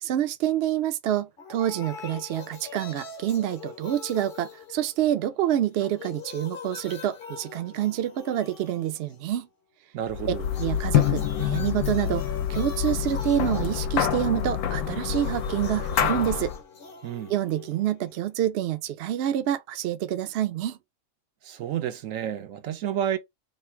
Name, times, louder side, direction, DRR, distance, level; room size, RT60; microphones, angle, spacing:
voice 1, 0.0-9.5 10.6-12.2 12.5-16.5 17.3-20.8, right 11 dB, 65° right, 0.7 m, -27 dB
sound 1, 1.4-5.4 5.7-9.4 10.4-18.4, left 6 dB, 45° left, 0.9 m, -43 dB
voice 2, 9.9-10.5 17.0-17.3 21.4-23.2, right 10 dB, 80° right, 1.0 m, -30 dB
sound 2, 10.1-16.6, left 10 dB, 80° left, 1.0 m, -27 dB
3.1 x 2.5 x 4.4 m
omnidirectional pair, 1.3 m